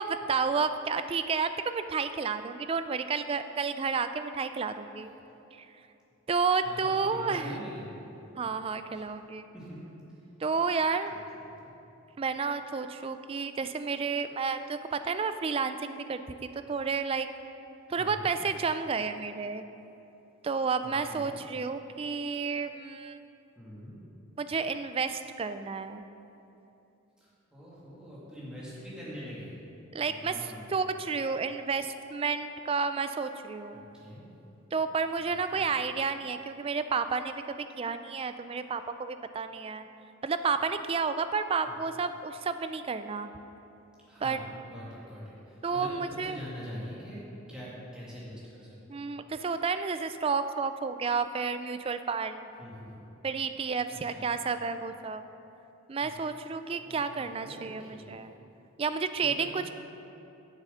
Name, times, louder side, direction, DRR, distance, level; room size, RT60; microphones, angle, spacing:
voice 1, 0.0-5.1 5.5-5.7 6.3-7.6 8.4-9.4 10.4-11.1 12.2-16.2 16.5-17.3 17.9-19.6 20.4-23.2 24.4-26.0 29.9-30.4 30.7-33.8 34.7-39.9 40.2-43.3 44.2-44.4 45.6-46.4 48.9-52.5 53.2-55.2 55.9-58.3 58.8-59.7, right 5 dB, 25° right, 10 dB, 0.3 m, -31 dB
voice 2, 6.5-6.8 7.1-7.9 8.9-9.0 9.5-9.8 11.1-11.7 17.9-18.3 20.8-21.4 23.6-24.0 27.2-29.6 30.0-30.8 33.7-34.3 35.2-35.7 41.6-41.7 44.1-49.1 52.6-53.0 53.9-54.2 56.0-56.1 56.8-58.2 59.2-59.7, equal, 5° right, -9 dB, 2.2 m, -44 dB
7.7 x 7.2 x 5.6 m, 3.0 s
head